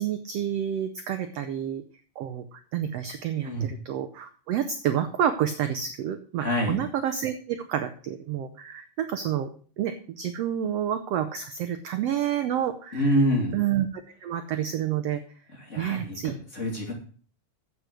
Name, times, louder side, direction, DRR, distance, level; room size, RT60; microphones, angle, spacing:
voice 1, 0.0-1.8 2.2-9.5 9.8-13.0 13.5-13.9 14.2-15.2 15.8-16.3, right 10 dB, 80° right, 9 dB, 1.4 m, -29 dB
voice 2, 6.4-6.8 12.9-13.6 15.5-16.9, equal, 25° left, 0 dB, 2.6 m, -26 dB
10.0 x 8.2 x 6.2 m, 0.43 s
omnidirectional pair, 3.8 m